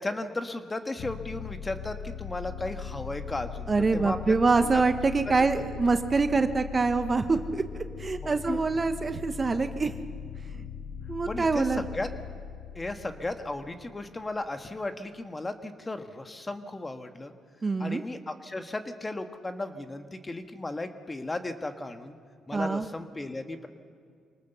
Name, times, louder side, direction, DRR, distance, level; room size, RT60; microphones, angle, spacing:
voice 1, 0.0-4.3 4.6-4.7 5.2-5.9 8.2-8.6 11.3-12.1 12.7-17.3 17.8-22.2 22.5-23.7, left 2 dB, 20° left, 7 dB, 1.5 m, -35 dB
sound 1, 1.0-14.4, left 7 dB, 70° left, 1.0 m, -40 dB
voice 2, 3.7-7.6 8.0-9.9 11.1-11.8 17.6-18.0 22.5-22.9, right 4 dB, 30° right, 9 dB, 0.9 m, -25 dB
25.0 x 19.0 x 6.8 m, 2.2 s
cardioid pair, 90°, 0 cm